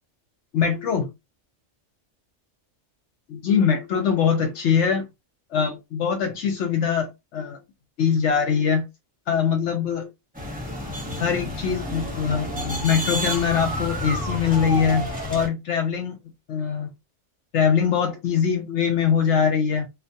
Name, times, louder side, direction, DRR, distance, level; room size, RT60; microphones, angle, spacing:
voice 1, 0.5-1.1 3.3-5.1 5.5-7.6 8.0-8.8 9.3-10.1 11.2-16.1 16.5-16.9 17.5-19.9, left 7 dB, 70° left, 0.9 m, -22 dB
sound 1, 10.3-15.5, equal, 10° right, 0.6 m, -30 dB
2.4 x 2.2 x 2.6 m
omnidirectional pair, 1.3 m